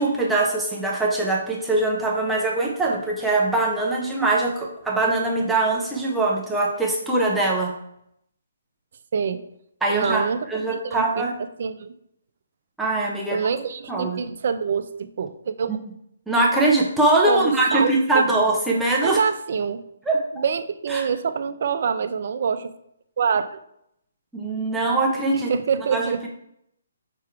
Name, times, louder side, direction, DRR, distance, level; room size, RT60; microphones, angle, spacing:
voice 1, 0.0-7.7 9.8-11.3 12.8-13.4 13.9-14.2 15.7-15.8 16.3-19.2 20.1-20.2 20.9-21.1 24.3-25.5 25.9-26.0, right 2 dB, 5° right, -3 dB, 0.8 m, -22 dB
voice 2, 9.9-11.3 11.6-11.9 13.3-15.8 17.3-18.2 19.0-19.8 20.3-22.7 23.2-23.6 25.5-26.3, right 6 dB, 55° right, 10 dB, 0.5 m, -25 dB
5.9 x 3.5 x 4.6 m, 0.75 s
hypercardioid pair, 155°, 0 cm